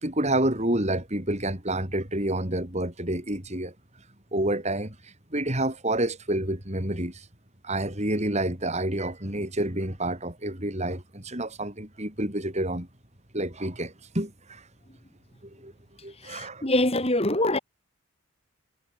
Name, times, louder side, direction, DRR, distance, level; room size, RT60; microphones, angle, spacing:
voice 1, 0.0-3.7 4.3-7.2 7.6-12.9 13.3-14.6 15.6-15.7 16.0-16.7, right 1 dB, 30° right, 5.0 m, -29 dB
voice 2, 16.2-17.6, left 1 dB, 25° left, 3.7 m, -24 dB
head